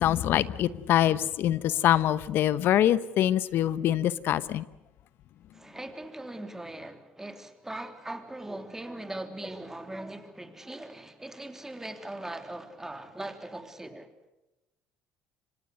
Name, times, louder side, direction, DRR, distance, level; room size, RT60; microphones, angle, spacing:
voice 1, 0.0-4.6, left 12 dB, 60° left, 1.0 m, -24 dB
voice 2, 5.5-14.1, right 1 dB, 10° right, 3.4 m, -40 dB
27.0 x 25.0 x 6.6 m
supercardioid pair, 75°, 4 cm